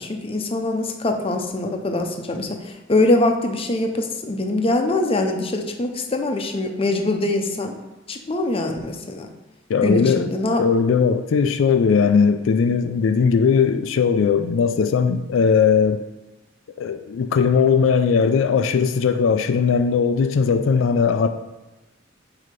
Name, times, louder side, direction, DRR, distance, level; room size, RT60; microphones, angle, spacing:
voice 1, 0.0-7.7 8.1-9.3 9.8-10.6, left 2 dB, 30° left, 0.6 m, -23 dB
voice 2, 9.7-10.3 10.6-16.0 16.8-21.3, left 6 dB, 80° left, 0.3 m, -18 dB
6.4 x 2.8 x 5.2 m
head